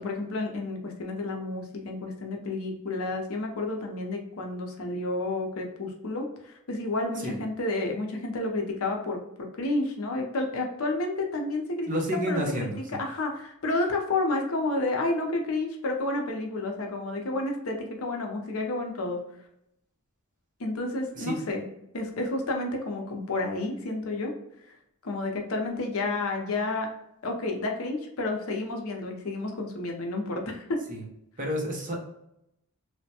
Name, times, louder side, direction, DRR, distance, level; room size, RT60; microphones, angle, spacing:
voice 1, 0.0-11.9 12.3-12.7 13.0-19.2 20.6-21.6 21.9-24.3 24.6-24.7 25.0-26.9 27.2-30.8, left 2 dB, 70° left, 2 dB, 0.6 m, -30 dB
voice 2, 11.9-13.0 21.1-21.4 30.9-31.0 31.4-32.0, equal, 40° right, -1 dB, 0.7 m, -30 dB
3.2 x 2.1 x 2.7 m, 0.81 s
head